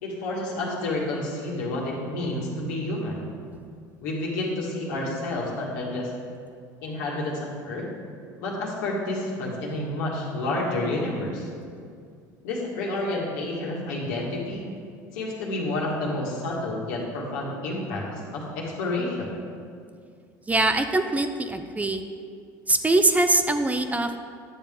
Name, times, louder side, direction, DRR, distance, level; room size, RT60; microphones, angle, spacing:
voice 1, 0.0-3.2 4.0-6.1 6.8-7.9 8.4-11.5 12.4-14.7 15.1-19.3, left 2 dB, 80° left, -3 dB, 1.8 m, -29 dB
voice 2, 20.5-22.0 22.7-24.2, right 2 dB, 15° right, 8 dB, 0.5 m, -22 dB
9.6 x 6.9 x 3.6 m, 2.3 s
hypercardioid pair, 85°, 10 cm